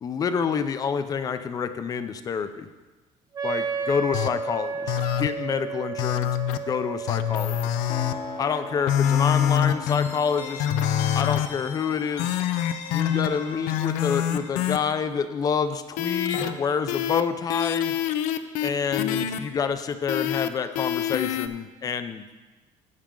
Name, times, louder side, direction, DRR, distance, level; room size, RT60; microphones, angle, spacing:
voice 1, 0.0-2.7 3.4-6.3 6.7-7.7 8.4-10.7 11.1-12.4 12.9-17.9 18.6-22.3, left 6 dB, 30° left, 10 dB, 0.6 m, -28 dB
Wind instrument woodwind instrument, 3.3-9.0, right 4 dB, 30° right, 0.7 m, -33 dB
sound 1, 4.1-4.3 4.9-5.3 6.0-6.6 7.1-8.1 8.9-10.1 10.6-11.5 12.2-13.3 13.7-14.8 16.0-16.5 16.9-17.2 17.5-19.4 20.1-20.5 20.8-21.5, left 11 dB, 85° left, 0.6 m, -25 dB
sound 2, 7.9-16.5, left 6 dB, 60° left, 1.2 m, -38 dB
17.0 x 6.2 x 3.8 m, 1.2 s
cardioid pair, 160°, 13 cm